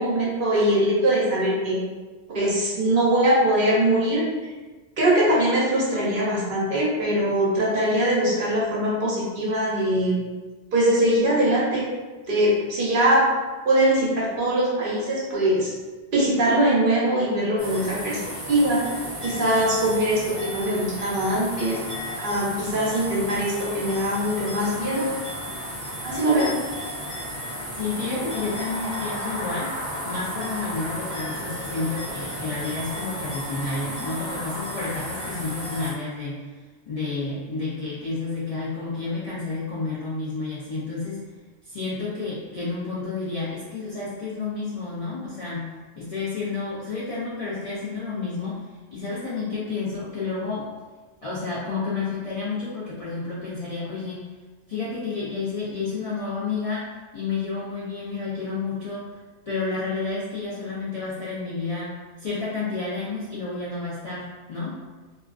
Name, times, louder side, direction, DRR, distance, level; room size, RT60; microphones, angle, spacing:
voice 1, 0.0-1.8 2.3-4.5 5.0-10.2 10.7-11.9 12.3-13.3 13.6-15.7 16.1-18.2 18.5-18.8 19.2-21.8 22.2-25.1 26.0-26.5, right 1 dB, 55° right, -6 dB, 0.7 m, -22 dB
sound 1, 17.6-35.9, equal, 20° right, 0.4 m, -33 dB
voice 2, 27.7-29.8 30.0-41.2 41.6-45.7 46.0-50.7 51.2-54.2 54.7-56.9 57.1-64.8, left 4 dB, 55° left, -9 dB, 0.4 m, -30 dB
2.4 x 2.2 x 2.3 m, 1.3 s
omnidirectional pair, 1.2 m